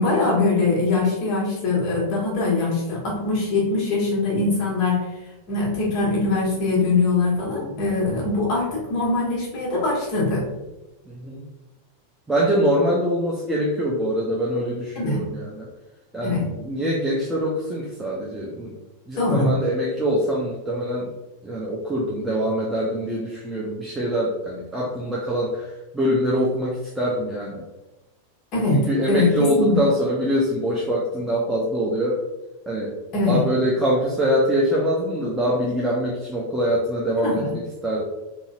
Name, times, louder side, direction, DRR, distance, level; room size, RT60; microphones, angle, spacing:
voice 1, 0.0-5.1 5.5-10.5 14.9-15.2 16.2-16.5 19.2-19.5 28.5-28.8 29.1-29.8 33.1-33.4 37.2-37.5, left 3 dB, 40° left, -5 dB, 1.5 m, -22 dB
voice 2, 7.5-7.8 11.1-11.5 12.3-15.7 16.1-18.8 19.1-21.1 21.4-27.6 28.7-32.2 32.7-33.0 33.3-38.0, equal, 10° right, -4 dB, 0.6 m, -24 dB
3.9 x 2.8 x 2.4 m, 1.0 s
figure-of-eight pair, 90°, 0 cm